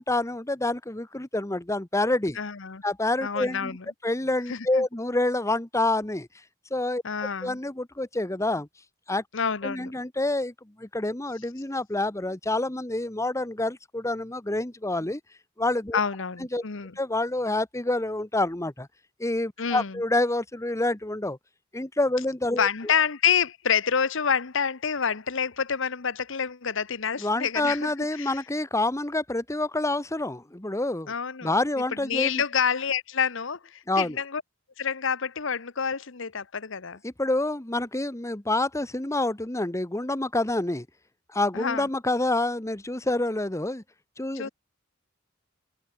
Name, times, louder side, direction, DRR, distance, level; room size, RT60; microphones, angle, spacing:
voice 1, 0.0-2.4 2.8-3.8 4.0-6.3 6.7-7.0 7.4-8.7 9.1-9.2 9.6-15.2 15.6-16.0 16.5-16.6 17.0-18.9 19.2-21.4 21.7-22.7 27.2-31.1 31.4-32.4 33.9-34.2 37.0-40.9 41.3-43.8 44.2-44.5, left 2 dB, 15° left, 1.3 m, -27 dB
voice 2, 2.4-2.8 3.2-3.8 4.5-4.8 7.0-7.6 9.3-9.9 15.9-16.9 19.6-20.0 22.6-28.4 31.1-31.5 32.0-34.4 34.8-37.0 41.5-41.9 44.3-44.5, left 7 dB, 70° left, 1.0 m, -28 dB
head